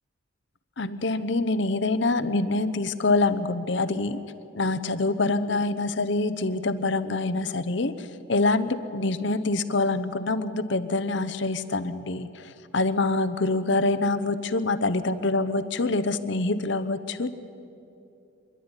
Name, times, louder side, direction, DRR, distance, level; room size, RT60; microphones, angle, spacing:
voice 1, 0.8-4.2 4.5-7.9 8.3-12.3 12.7-17.3, left 2 dB, 65° left, 12 dB, 0.9 m, -25 dB
25.5 x 11.5 x 9.7 m, 2.8 s
head